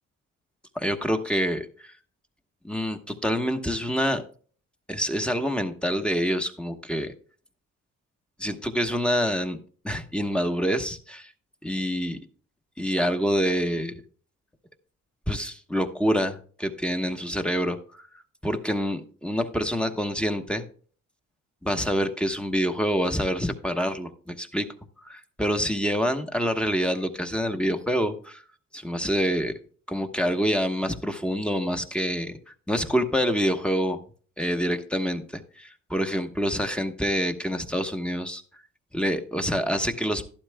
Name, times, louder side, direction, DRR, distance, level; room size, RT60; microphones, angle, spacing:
voice 1, 0.7-1.9 2.6-4.2 4.9-7.1 8.4-9.6 9.8-11.3 11.6-12.2 12.8-13.9 15.3-18.1 18.4-20.6 21.6-24.7 25.0-28.4 28.7-29.5 29.9-32.4 32.7-34.0 34.4-38.4 38.9-40.3, equal, 5° left, 5 dB, 1.1 m, -26 dB
12.0 x 11.5 x 2.2 m, 0.43 s
cardioid pair, 90°, 30 cm